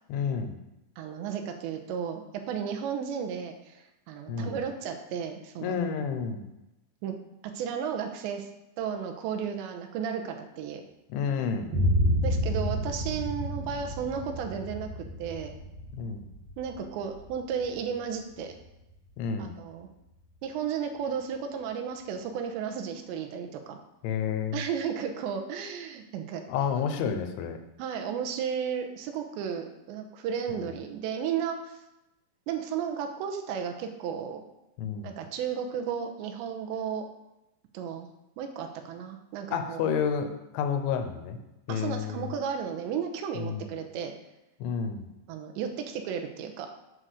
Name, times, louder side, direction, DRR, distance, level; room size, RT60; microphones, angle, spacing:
voice 1, 0.1-0.6 4.3-4.5 5.6-6.5 11.1-11.8 15.9-16.2 19.2-19.6 24.0-24.6 26.5-27.6 30.5-30.7 34.8-35.1 39.5-41.4 41.7-42.3 43.4-43.6 44.6-45.1, left 6 dB, 85° left, 7 dB, 3.3 m, -30 dB
voice 2, 1.0-5.8 7.0-7.2 7.4-8.5 8.8-10.8 12.2-15.5 16.6-18.5 19.4-19.9 20.4-23.8 24.5-26.4 27.8-31.8 32.5-34.4 35.0-37.0 37.7-38.1 38.4-39.9 41.7-44.1 45.3-46.7, right 7 dB, 80° right, 5 dB, 3.0 m, -34 dB
Boom, 11.7-19.6, equal, 50° right, 2.2 m, -31 dB
8.0 x 7.6 x 6.5 m, 0.93 s
omnidirectional pair, 5.3 m